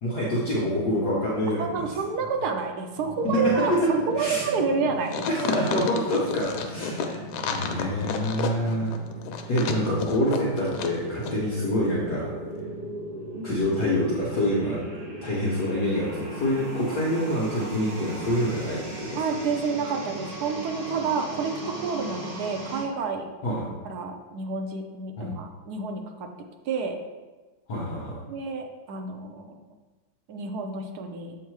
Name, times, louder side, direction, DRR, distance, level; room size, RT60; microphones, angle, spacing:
voice 1, 0.0-1.9 4.1-4.4 5.3-8.9 9.5-12.3 13.4-14.8 15.2-19.2 23.4-23.6 25.2-25.3 27.7-28.2, equal, 60° left, -5 dB, 1.5 m, -26 dB
voice 2, 1.6-5.3 5.5-5.7 9.6-9.7 13.3-13.6 19.1-23.3 23.8-26.3 26.7-27.0 28.3-29.5 30.3-31.4, right 4 dB, 65° right, 4 dB, 1.0 m, -29 dB
sound 1, 2.9-22.8, right 1 dB, 35° right, 1.0 m, -38 dB
sound 2, 5.1-11.0 11.2-11.3, left 6 dB, 90° left, 1.5 m, -31 dB
7.3 x 3.6 x 4.6 m, 1.3 s
omnidirectional pair, 2.1 m